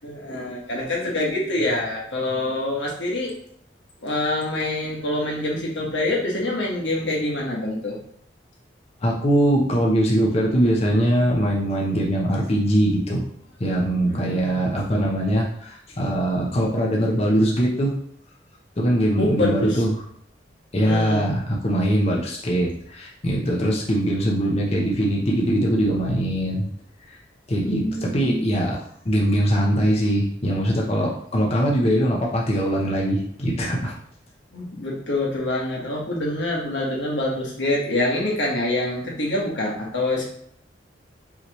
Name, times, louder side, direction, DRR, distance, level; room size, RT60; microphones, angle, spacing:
voice 1, 0.0-3.3 4.0-8.0 14.0-14.8 19.2-19.8 20.7-21.3 27.6-28.4 34.5-40.2, left 1 dB, 85° left, -3 dB, 1.3 m, -26 dB
voice 2, 9.0-13.2 13.6-17.9 18.8-19.9 20.7-26.7 27.5-33.9, right 1 dB, 35° left, -2 dB, 0.7 m, -22 dB
5.6 x 2.9 x 3.0 m, 0.65 s
head